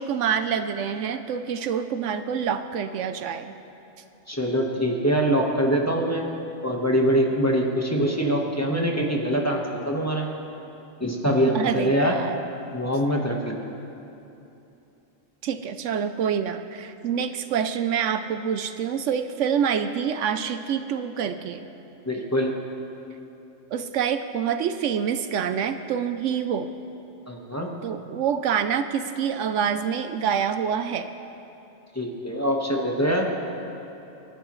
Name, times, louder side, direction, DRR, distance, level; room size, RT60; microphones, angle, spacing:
voice 1, 0.0-3.5 11.5-12.4 15.4-21.7 23.7-26.7 27.8-31.1, right 7 dB, 75° right, 9 dB, 0.9 m, -26 dB
voice 2, 4.3-6.2 6.6-10.3 11.0-12.1 12.7-13.6 22.0-22.5 27.3-27.7 31.9-33.3, equal, 15° left, -1 dB, 1.2 m, -23 dB
27.0 x 11.5 x 3.1 m, 2.9 s
omnidirectional pair, 1.3 m